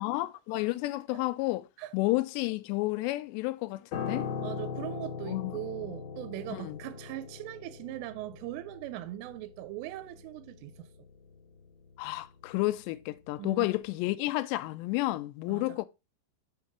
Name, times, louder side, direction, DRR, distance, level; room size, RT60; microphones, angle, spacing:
voice 1, 0.0-1.7 1.9-4.3 5.3-5.6 6.5-6.8 12.0-15.9, left 19 dB, 85° left, 2.7 m, -31 dB
Piano, 3.9-13.3 13.6-13.8, left 6 dB, 65° left, 2.9 m, -41 dB
voice 2, 4.4-10.9 13.4-13.7 15.5-15.8, right 15 dB, 85° right, 2.8 m, -40 dB
7.3 x 3.0 x 5.8 m
omnidirectional pair, 5.0 m